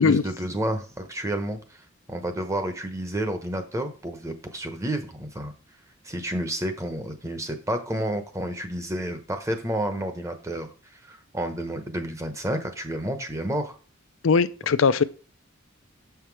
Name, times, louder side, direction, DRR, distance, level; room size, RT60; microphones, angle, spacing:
voice 1, 0.0-1.8 2.1-5.5 6.0-10.7 10.9-13.7, right 1 dB, 15° right, 1.0 m, -30 dB
voice 2, 14.2-15.0, left 5 dB, 70° left, 0.5 m, -19 dB
7.7 x 5.8 x 4.7 m
head